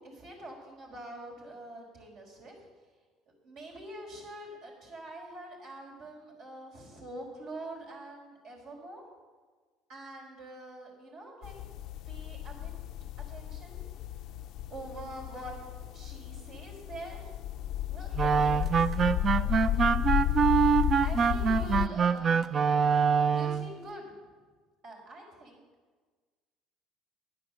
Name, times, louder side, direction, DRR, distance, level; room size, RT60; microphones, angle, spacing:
voice 1, 0.0-2.5 3.4-9.0 9.9-11.5 12.1-12.7 13.2-13.8 14.7-15.5 15.9-17.2 17.9-19.0 21.0-22.7 23.3-24.2 24.8-25.6, right 1 dB, 65° right, -2 dB, 4.6 m, -45 dB
sound 1, 11.4-21.9, left 13 dB, 65° left, 0.4 m, -33 dB
sound 2, 18.2-23.7, right 6 dB, 40° right, 0.5 m, -25 dB
10.5 x 10.0 x 6.8 m, 1.4 s
supercardioid pair, 100°, 0 cm